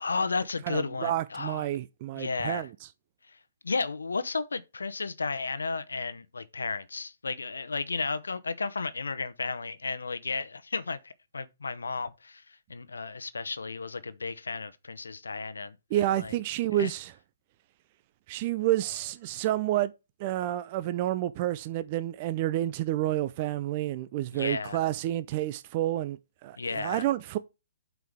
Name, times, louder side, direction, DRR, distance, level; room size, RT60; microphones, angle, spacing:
voice 1, 0.0-1.7 2.1-2.7 3.6-15.8 16.1-16.3 16.8-16.9 24.3-24.8 26.6-27.0, left 4 dB, 80° left, 0.8 m, -33 dB
voice 2, 0.7-2.7 15.9-17.1 18.3-19.9 20.2-27.4, right 14 dB, 35° right, 0.4 m, -29 dB
8.1 x 4.6 x 3.5 m
hypercardioid pair, 140°, 0 cm